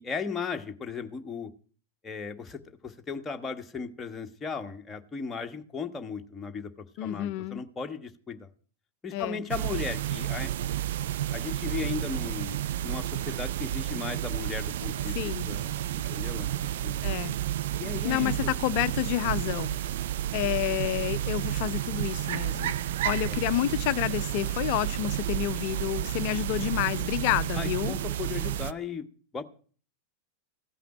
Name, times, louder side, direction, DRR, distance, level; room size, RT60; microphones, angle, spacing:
voice 1, 0.0-1.5 2.0-8.5 9.0-10.5 11.3-12.6 12.8-15.8 16.1-16.5 16.8-17.0 17.8-18.3 23.3-23.4 27.6-29.1 29.3-29.4, left 5 dB, 15° left, 1.2 m, -36 dB
voice 2, 7.0-7.6 9.1-9.4 15.1-15.5 17.0-17.4 18.0-19.8 20.3-22.8 23.0-27.9, left 15 dB, 45° left, 0.5 m, -29 dB
sound 1, 9.5-28.7, right 12 dB, 55° right, 0.5 m, -31 dB
15.0 x 5.8 x 8.7 m
figure-of-eight pair, 90°, 0 cm